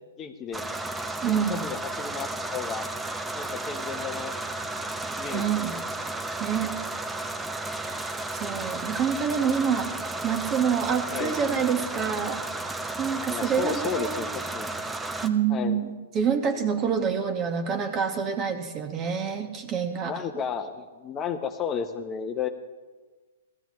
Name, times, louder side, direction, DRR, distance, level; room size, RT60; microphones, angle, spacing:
voice 1, 0.2-0.6 1.1-2.9 3.3-4.3 4.7-5.9 11.1-11.5 13.3-14.3 14.5-14.7 15.5-15.8 20.0-22.5, left 7 dB, 25° left, 7 dB, 0.9 m, -33 dB
sound 1, 0.5-15.3, right 2 dB, 10° right, 0.8 m, -33 dB
voice 2, 1.2-1.6 5.3-5.8 6.4-6.7 7.8-9.9 10.2-12.4 13.0-14.2 15.2-20.1, right 7 dB, 30° right, 7 dB, 1.3 m, -27 dB
17.0 x 14.0 x 3.2 m, 1.3 s
hypercardioid pair, 130°, 0 cm